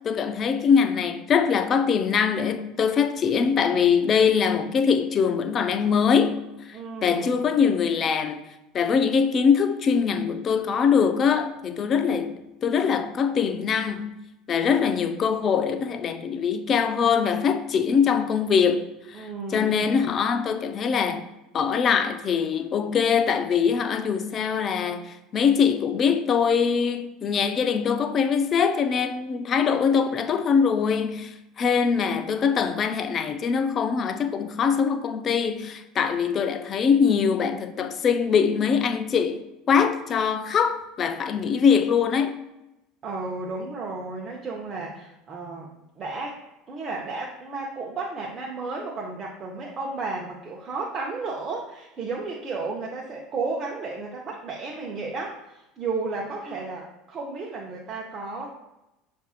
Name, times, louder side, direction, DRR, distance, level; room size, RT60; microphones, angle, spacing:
voice 1, 0.0-6.4 7.0-8.4 8.7-14.1 14.5-21.2 21.5-39.4 39.7-42.3, left 6 dB, 40° left, 0.4 m, -23 dB
voice 2, 6.7-7.5 19.1-19.9 43.0-45.7 46.0-46.4 46.7-58.5, right 3 dB, 35° right, 0.7 m, -33 dB
6.7 x 2.6 x 2.4 m
figure-of-eight pair, 70°, 0 cm